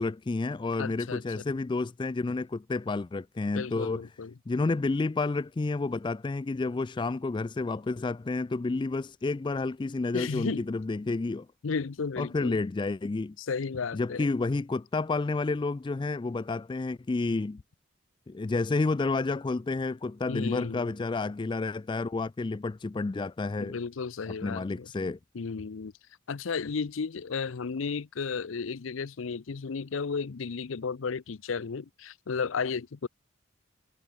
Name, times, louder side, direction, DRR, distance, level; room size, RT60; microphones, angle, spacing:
voice 1, 0.0-4.1 4.5-11.5 12.2-13.4 13.9-17.6 18.3-23.8 24.3-25.2, left 3 dB, 25° left, 0.3 m, -30 dB
voice 2, 0.8-1.2 3.5-4.3 10.1-10.7 11.6-12.6 13.4-14.3 20.3-21.0 23.6-24.9 25.3-25.9 26.3-33.1, left 5 dB, 80° left, 0.6 m, -33 dB
head